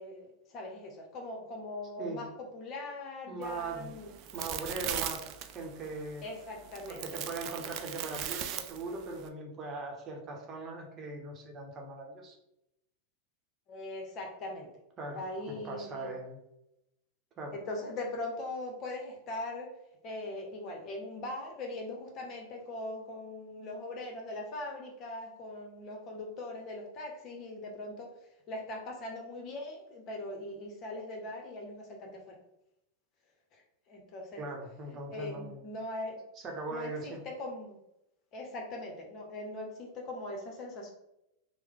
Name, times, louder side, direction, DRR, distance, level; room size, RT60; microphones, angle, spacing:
voice 1, 0.0-2.3 2.5-4.1 6.2-7.0 13.7-14.7 15.1-16.1 17.5-19.7 20.0-32.4 33.5-34.4 34.9-36.2 36.7-37.8 38.3-40.9, left 2 dB, 45° left, 2 dB, 0.9 m, -41 dB
voice 2, 3.3-3.9 4.3-5.2 5.5-6.3 6.9-12.4 15.0-15.2 15.5-16.4 17.4-17.5 34.4-35.6 36.4-37.2, right 2 dB, 35° right, 0 dB, 0.9 m, -40 dB
sound 1, 3.4-9.3, right 10 dB, 50° right, 0.3 m, -39 dB
3.1 x 2.1 x 3.7 m, 0.84 s
hypercardioid pair, 100°, 0 cm